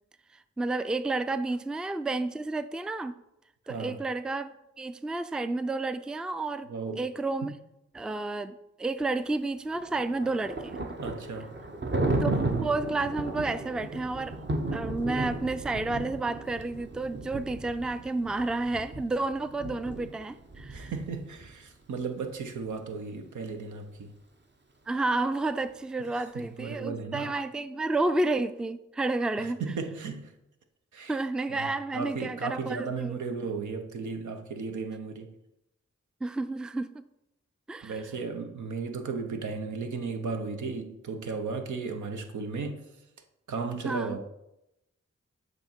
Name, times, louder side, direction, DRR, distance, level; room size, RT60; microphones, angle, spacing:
voice 1, 0.6-3.2 3.7-6.7 7.0-7.5 7.9-10.8 12.2-14.4 14.7-20.9 24.9-29.6 31.1-33.2 36.2-37.0 37.7-38.0 43.8-44.2, right 2 dB, 5° right, 0.3 m, -31 dB
voice 2, 3.7-4.0 6.7-7.1 7.4-7.5 11.0-11.5 20.7-24.1 26.1-27.3 29.4-30.3 30.9-31.2 31.5-35.3 37.8-42.9 43.5-44.3, right 4 dB, 85° right, 0.7 m, -35 dB
Thunder, 9.7-21.5, right 2 dB, 40° right, 0.8 m, -34 dB
7.8 x 3.0 x 4.4 m
cardioid pair, 45°, 29 cm